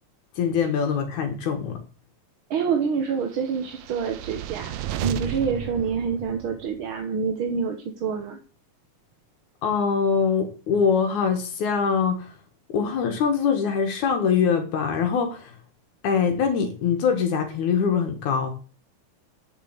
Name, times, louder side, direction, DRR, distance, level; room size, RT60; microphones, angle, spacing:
voice 1, 0.4-1.8 9.6-12.3 12.7-15.5 16.0-18.5, left 6 dB, 80° left, 5 dB, 3.0 m, -23 dB
voice 2, 2.5-8.4, right 6 dB, 55° right, 5 dB, 1.7 m, -27 dB
sound 1, 3.5-6.9, right 13 dB, 75° right, 2.0 m, -33 dB
8.5 x 7.4 x 8.0 m, 0.37 s
omnidirectional pair, 3.3 m